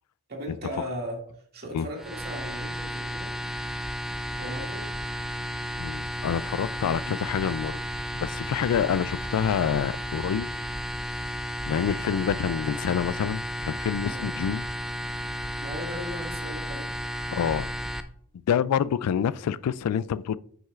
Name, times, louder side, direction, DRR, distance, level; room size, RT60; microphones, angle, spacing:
voice 1, 0.3-1.2 1.5-3.3 4.3-4.9 14.0-14.3 15.6-16.9, equal, 45° right, 2.1 m, -37 dB
sound 1, 2.0-18.0, equal, ahead, 0.5 m, -33 dB
voice 2, 5.8-7.8 8.1-10.5 11.7-14.7 17.3-17.7 18.5-20.4, left 8 dB, 85° left, 0.3 m, -27 dB
9.9 x 6.3 x 2.4 m
head